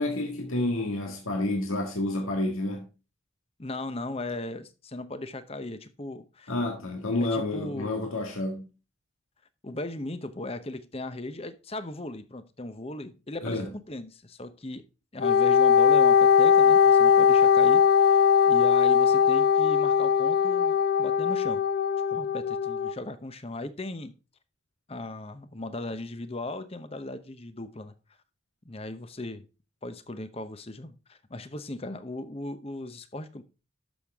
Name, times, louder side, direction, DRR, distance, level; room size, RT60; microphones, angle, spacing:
voice 1, 0.0-2.9 6.5-8.7 13.4-13.7, left 2 dB, 85° left, 1.8 m, -29 dB
voice 2, 3.6-6.5 7.2-7.9 9.6-14.8 15.1-21.6 22.1-24.1 24.9-27.9 28.6-29.5 29.8-33.4, left 2 dB, 30° left, 0.9 m, -37 dB
Wind instrument woodwind instrument, 15.2-22.9, left 7 dB, 45° left, 0.4 m, -20 dB
11.5 x 6.7 x 3.5 m
head